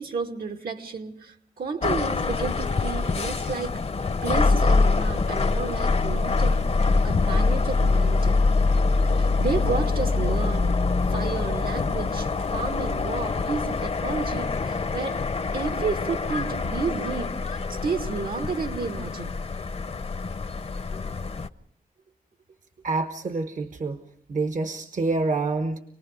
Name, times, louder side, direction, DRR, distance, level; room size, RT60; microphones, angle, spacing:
voice 1, 0.0-3.7 4.2-6.6 7.0-8.4 9.1-10.7 11.1-15.2 15.5-19.4, right 4 dB, 85° right, 3 dB, 2.3 m, -31 dB
sound 1, 1.8-21.5, left 3 dB, 45° left, 0.7 m, -24 dB
voice 2, 22.8-24.0 24.3-25.8, right 3 dB, 60° right, 8 dB, 1.1 m, -27 dB
27.0 x 19.5 x 5.2 m, 0.66 s
wide cardioid pair, 85°, 15 cm